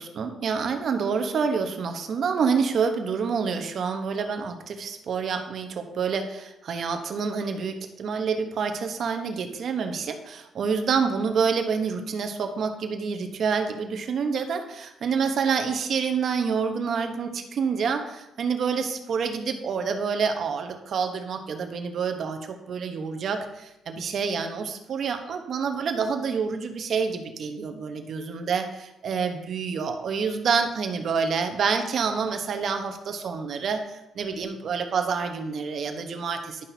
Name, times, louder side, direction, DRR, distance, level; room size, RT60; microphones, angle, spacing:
voice 1, 0.0-36.7, right 5 dB, 60° right, 6 dB, 0.9 m, -27 dB
11.0 x 5.8 x 2.8 m, 0.94 s
cardioid pair, 90°, 0 cm